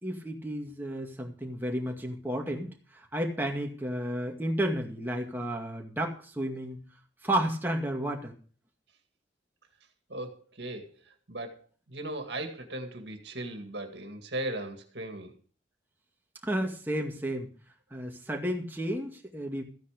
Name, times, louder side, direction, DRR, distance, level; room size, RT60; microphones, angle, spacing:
voice 1, 0.0-6.8 7.2-8.3 16.4-17.5 17.9-19.6, right 1 dB, 10° right, 2.2 m, -32 dB
voice 2, 10.1-15.3, right 1 dB, 70° right, 2.2 m, -38 dB
14.5 x 9.5 x 5.1 m
head